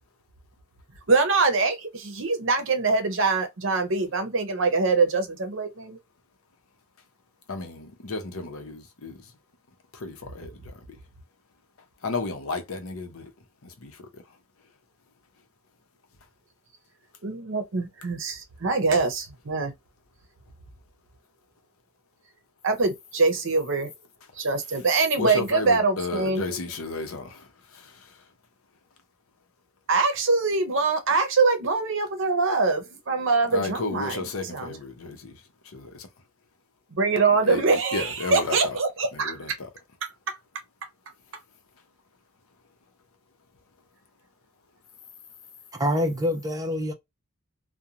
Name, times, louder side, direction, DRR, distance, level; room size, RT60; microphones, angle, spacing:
voice 1, 1.1-6.0 17.2-19.7 22.6-23.9 24.3-26.6 29.9-34.8 36.9-39.4 40.0-40.4, right 3 dB, 60° right, 0.7 m, -24 dB
voice 2, 7.5-9.1 10.0-10.5 12.0-13.3 13.8-13.9 25.2-25.7 26.0-27.3 33.5-35.3 35.7-35.9 37.5-37.6 37.9-38.6 39.2-39.5, left 3 dB, 75° left, 0.7 m, -32 dB
voice 3, 45.7-46.9, equal, 15° right, 0.4 m, -26 dB
2.4 x 2.2 x 2.8 m
head